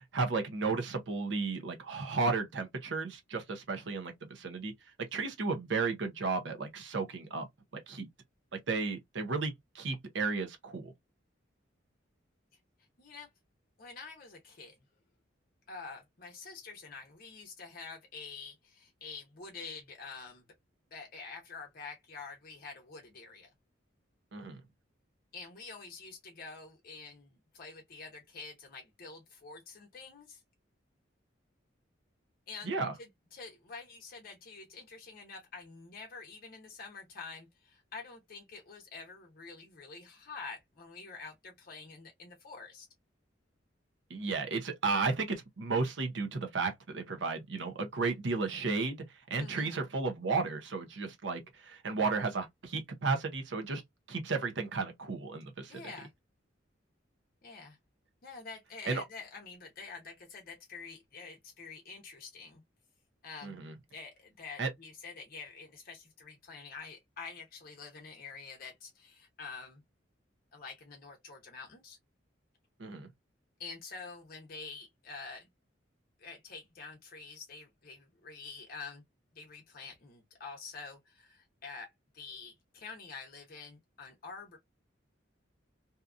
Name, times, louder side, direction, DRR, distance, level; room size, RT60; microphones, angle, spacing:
voice 1, 0.0-4.7 5.1-7.5 7.9-8.1 8.7-10.9 24.3-24.6 32.7-32.9 44.1-49.0 49.3-53.8 54.1-55.8 58.9-59.0 63.4-63.7 64.6-64.7 72.8-73.1, right 4 dB, 65° right, 0.7 m, -33 dB
voice 2, 13.0-13.3 13.8-14.7 15.7-20.4 20.9-23.5 25.3-30.4 32.5-42.9 49.3-49.8 55.7-56.1 57.4-57.8 58.2-62.6 63.2-63.6 63.9-69.8 70.5-72.0 73.6-75.5 76.2-79.0 79.3-84.6, left 4 dB, 50° left, 0.7 m, -47 dB
2.7 x 2.3 x 2.4 m
head